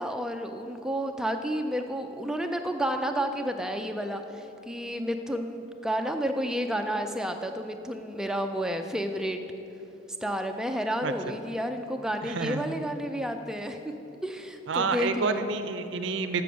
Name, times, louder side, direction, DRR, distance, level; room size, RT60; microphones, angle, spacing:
voice 1, 0.0-9.4 10.2-13.9 14.2-15.4, equal, 5° right, 5 dB, 0.3 m, -31 dB
voice 2, 12.2-12.6 14.7-16.4, right 4 dB, 60° right, 9 dB, 0.5 m, -29 dB
6.9 x 6.2 x 6.9 m, 3.0 s
head